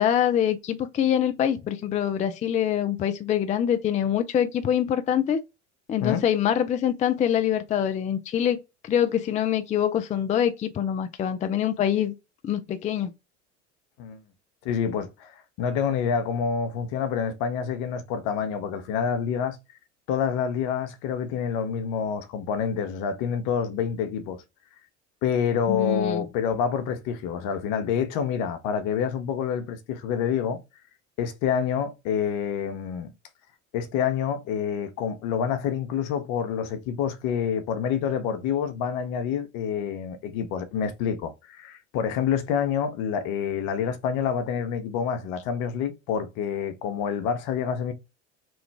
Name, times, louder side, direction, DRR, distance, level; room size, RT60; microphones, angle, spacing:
voice 1, 0.0-5.4 5.9-12.1 12.4-13.1 25.7-26.2, left 9 dB, 20° left, 0.4 m, -25 dB
voice 2, 14.6-19.6 20.1-24.4 25.2-30.6 31.2-33.1 33.7-47.9, left 7 dB, 55° left, 0.8 m, -27 dB
3.1 x 2.3 x 3.3 m
hypercardioid pair, 75°, 35 cm